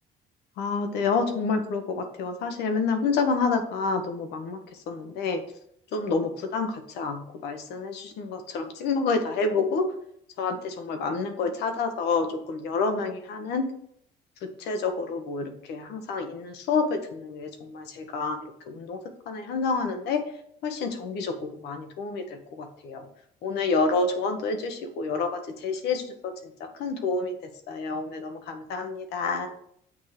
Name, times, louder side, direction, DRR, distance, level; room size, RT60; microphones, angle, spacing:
voice 1, 0.6-4.6 4.9-5.4 5.9-9.9 10.4-13.7 14.6-19.0 19.3-20.2 20.6-21.3 21.6-23.0 23.4-26.3 26.8-27.3 27.7-29.5, left 4 dB, 80° left, 6 dB, 1.0 m, -28 dB
7.1 x 2.9 x 4.9 m, 0.68 s
cardioid pair, 110°, 17 cm